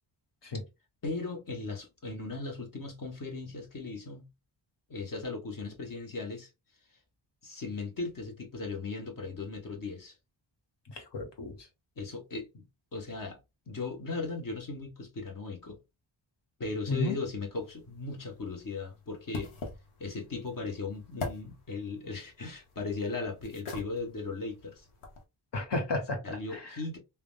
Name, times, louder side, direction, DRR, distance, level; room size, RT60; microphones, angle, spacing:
voice 1, 1.0-4.3 4.9-6.5 7.4-10.1 12.0-12.6 12.9-13.4 13.7-15.8 16.6-19.5 20.0-24.9 26.2-27.0, left 3 dB, 45° left, 1.0 m, -37 dB
voice 2, 10.9-11.7 16.9-17.2 25.5-26.8, left 2 dB, 60° left, 1.3 m, -33 dB
sound 1, 17.5-25.2, left 2 dB, 85° left, 0.9 m, -45 dB
3.4 x 2.2 x 2.3 m
cardioid pair, 55°, 48 cm